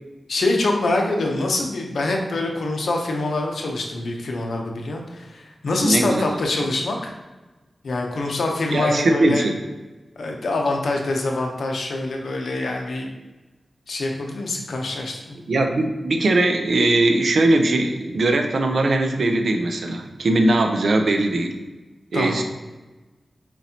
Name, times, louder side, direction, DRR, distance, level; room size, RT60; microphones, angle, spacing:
voice 1, 0.3-7.1 7.8-9.5 10.2-13.1 13.9-15.4 22.1-22.4, left 2 dB, 80° left, 1 dB, 0.8 m, -25 dB
voice 2, 5.8-6.4 8.7-9.5 15.5-21.5 22.1-22.4, right 2 dB, 70° right, 5 dB, 0.6 m, -20 dB
4.5 x 4.0 x 2.8 m, 1.2 s
wide cardioid pair, 105°, 0 cm